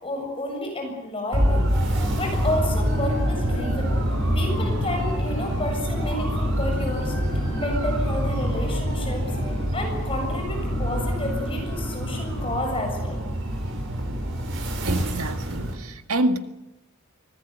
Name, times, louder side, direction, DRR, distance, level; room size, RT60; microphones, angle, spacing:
voice 1, 0.0-1.7 2.1-4.0 4.3-7.1 7.5-9.3 9.7-13.2, left 1 dB, 25° left, 7.3 m, -30 dB
sound 1, 1.3-15.7, equal, 60° right, 6.0 m, -26 dB
sound 2, 1.8-12.6, left 1 dB, 50° left, 3.1 m, -39 dB
voice 2, 14.8-16.4, right 2 dB, 85° right, 1.8 m, -26 dB
25.0 x 19.0 x 8.2 m
head